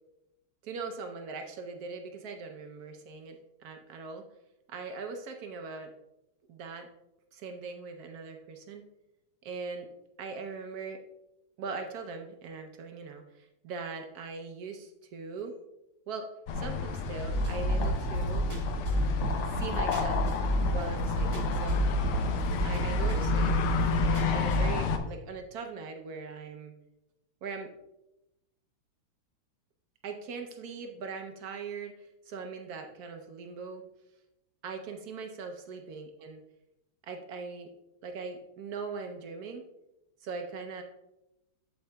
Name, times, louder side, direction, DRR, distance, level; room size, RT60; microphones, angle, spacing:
voice 1, 0.6-4.3 4.7-5.9 6.5-6.9 7.3-8.8 9.4-9.9 10.2-11.0 11.6-15.6 16.1-18.5 19.5-20.4 20.7-21.8 22.6-23.6 23.9-26.8 27.4-27.7 30.0-33.8 34.6-36.4 37.1-37.7 38.0-39.7 40.2-40.8, right 4 dB, 80° right, 5 dB, 0.8 m, -40 dB
sound 1, 16.5-25.0, left 4 dB, 80° left, 1.6 m, -31 dB
sound 2, 17.3-24.7, equal, 25° right, 0.7 m, -31 dB
8.4 x 7.9 x 2.2 m, 0.92 s
omnidirectional pair, 2.4 m